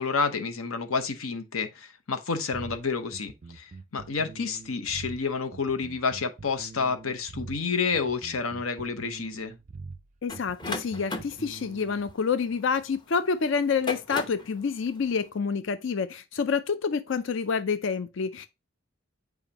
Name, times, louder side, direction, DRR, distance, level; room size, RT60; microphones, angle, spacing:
voice 1, 0.0-9.5, left 5 dB, 85° left, 0.9 m, -29 dB
sound 1, 2.5-12.1, right 4 dB, 35° right, 0.4 m, -44 dB
voice 2, 10.2-18.5, left 5 dB, 60° left, 0.5 m, -28 dB
sound 2, 10.3-13.0 13.6-14.5, left 2 dB, 20° left, 0.8 m, -36 dB
7.1 x 4.8 x 2.8 m
head